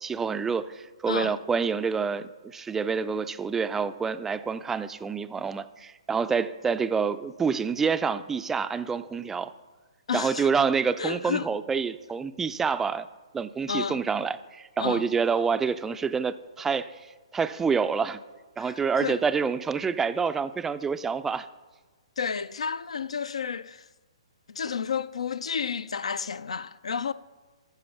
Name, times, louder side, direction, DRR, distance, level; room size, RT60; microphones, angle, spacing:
voice 1, 0.0-9.5 10.1-13.1 13.3-16.9 17.3-18.2 18.6-21.5, right 5 dB, 10° right, 0.3 m, -27 dB
voice 2, 1.1-1.4 10.1-10.5 11.0-11.5 13.7-14.0 14.8-15.1 18.6-19.2 22.2-23.9 24.5-27.1, left 6 dB, 75° left, 0.4 m, -31 dB
14.5 x 5.4 x 5.8 m
figure-of-eight pair, 130°, 3 cm